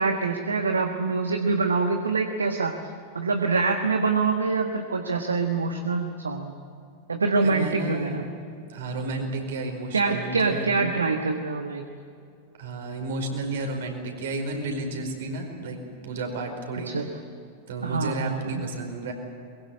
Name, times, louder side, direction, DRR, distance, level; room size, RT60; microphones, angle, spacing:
voice 1, 0.0-2.8 3.1-6.6 7.1-8.2 9.9-11.9 16.9-17.1 17.8-18.6, right 4 dB, 75° right, 6 dB, 1.3 m, -25 dB
voice 2, 7.4-8.4 8.7-10.7 12.6-17.0 17.7-19.1, right 2 dB, 60° right, 3 dB, 5.0 m, -32 dB
22.5 x 22.0 x 8.5 m, 2.5 s
figure-of-eight pair, 90°, 0 cm